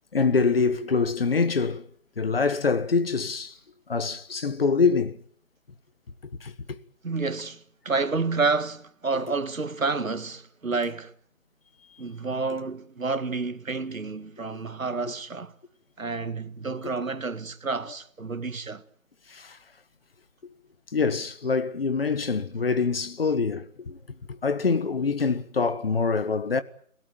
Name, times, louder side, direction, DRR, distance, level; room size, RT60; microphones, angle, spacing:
voice 1, 0.1-1.9 2.2-3.6 3.9-5.2 6.4-6.8 15.0-15.1 16.8-16.9 19.3-19.6 20.9-24.0 24.3-26.6, left 4 dB, 45° left, 1.6 m, -25 dB
voice 2, 7.0-11.1 12.0-15.5 16.0-18.8, right 4 dB, 85° right, 1.8 m, -29 dB
30.0 x 17.5 x 9.1 m
figure-of-eight pair, 165°, 40 cm